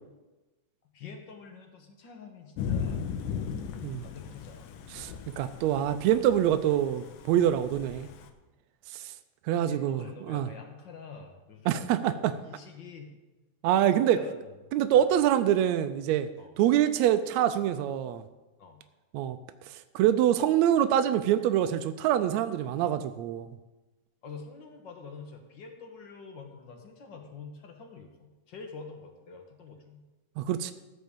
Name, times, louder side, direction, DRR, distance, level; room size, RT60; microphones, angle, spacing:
voice 1, 0.9-3.0 4.0-4.8 9.5-13.1 14.1-14.5 14.9-15.1 16.4-16.5 18.6-18.8 24.2-30.0, left 5 dB, 50° left, 4 dB, 1.5 m, -46 dB
Thunder / Rain, 2.6-8.3, left 7 dB, 85° left, 2.3 m, -37 dB
voice 2, 4.9-8.1 8.9-9.1 9.5-10.5 11.7-12.3 13.6-14.2 14.7-16.3 16.6-18.2 19.1-19.4 19.9-23.5 30.4-30.7, right 11 dB, 80° right, 9 dB, 1.7 m, -25 dB
15.0 x 5.3 x 7.1 m, 1.1 s
omnidirectional pair, 3.5 m